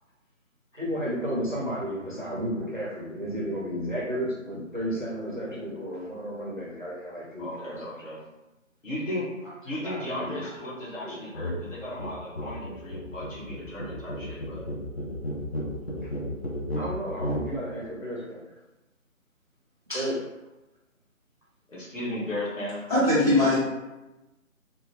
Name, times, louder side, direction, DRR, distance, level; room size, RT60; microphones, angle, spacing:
voice 1, 0.7-7.9 9.8-10.5 11.0-11.2 16.0-16.1 16.8-18.4 19.9-20.3, equal, 40° right, -4 dB, 0.4 m, -33 dB
voice 2, 7.4-8.2 8.8-9.3 9.6-14.7 21.7-22.8, left 1 dB, 65° left, -7 dB, 1.4 m, -35 dB
sound 1, 11.3-11.6 11.9-17.5, equal, 50° left, 0.6 m, -33 dB
voice 3, 22.9-23.6, left 1 dB, 25° left, -13 dB, 1.5 m, -20 dB
2.9 x 2.2 x 2.9 m, 1.0 s
figure-of-eight pair, 175°, 40 cm